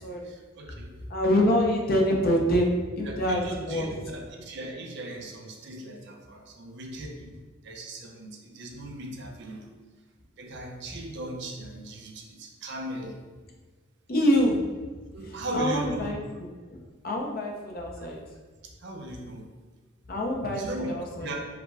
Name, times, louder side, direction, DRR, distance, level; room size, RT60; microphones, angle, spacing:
voice 1, 0.2-0.9 2.4-2.5 3.1-7.3 7.6-9.7 10.4-13.2 15.1-16.2 18.8-19.5 20.5-20.9 21.2-21.4, right 1 dB, 55° right, 2 dB, 0.6 m, -38 dB
voice 2, 1.1-4.0 14.1-14.6 15.2-16.2 16.7-16.8 17.0-18.2 20.1-21.4, equal, 45° left, 0 dB, 0.7 m, -25 dB
4.9 x 2.2 x 4.6 m, 1.4 s
head